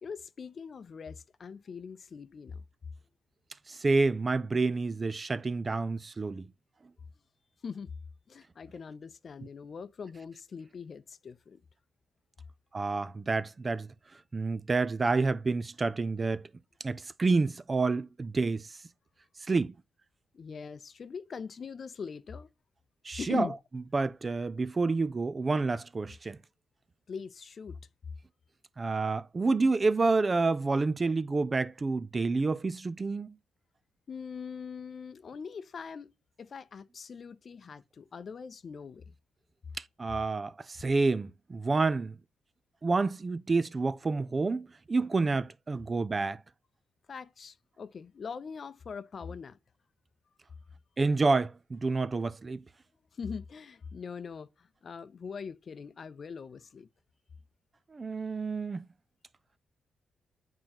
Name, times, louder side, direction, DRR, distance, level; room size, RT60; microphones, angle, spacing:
voice 1, 0.0-2.6 7.6-7.9 8.3-11.6 20.3-22.5 23.2-23.6 27.1-27.8 34.1-36.1 36.4-39.0 47.1-49.6 53.1-56.9, left 6 dB, 50° left, 0.6 m, -42 dB
voice 2, 3.7-6.5 12.7-13.9 14.3-16.4 16.8-18.8 19.5-19.7 23.0-23.5 23.9-26.4 28.8-33.3 39.8-42.1 42.8-46.4 51.0-52.6 57.9-58.9, right 3 dB, 30° right, 0.4 m, -29 dB
8.8 x 3.7 x 2.9 m
cardioid pair, 95°, 0 cm